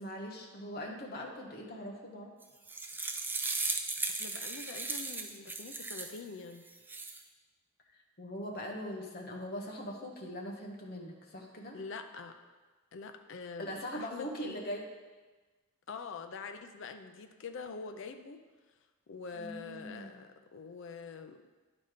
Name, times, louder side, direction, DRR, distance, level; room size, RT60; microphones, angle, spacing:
voice 1, 0.0-2.3 7.9-11.8 13.6-14.9 19.3-20.2, equal, 50° left, 0 dB, 1.2 m, -41 dB
sound 1, 2.4-6.2 6.7-7.2, right 3 dB, 10° right, 0.4 m, -36 dB
voice 2, 4.1-6.7 11.7-12.4 12.9-14.6 15.9-18.4 19.1-21.5, left 4 dB, 65° left, 7 dB, 0.5 m, -45 dB
10.5 x 4.1 x 5.0 m, 1.3 s
head